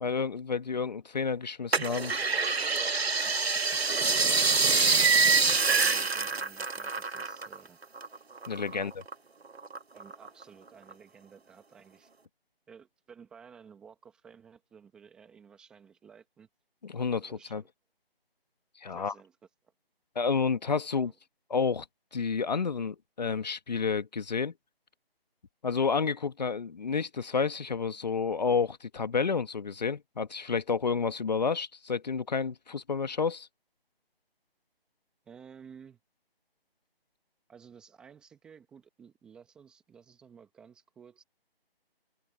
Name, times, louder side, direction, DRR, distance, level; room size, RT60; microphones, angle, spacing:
voice 1, 0.0-2.1 8.5-8.9 16.8-17.6 18.8-19.1 20.1-21.1 21.5-21.8 22.1-24.5 25.6-33.5, left 5 dB, 45° left, 1.4 m, -30 dB
sound 1, 1.7-7.6 7.8-9.1 9.6-10.4 10.9-11.0, right 4 dB, 85° right, 1.4 m, -26 dB
voice 2, 3.2-3.8 5.3-7.8 8.7-8.9 9.9-12.1 12.7-16.5 17.2-17.7 18.9-19.4 21.0-21.1 35.2-36.0 37.5-41.2, right 7 dB, 5° right, 1.1 m, -54 dB
open air
figure-of-eight pair, 165°, 30 cm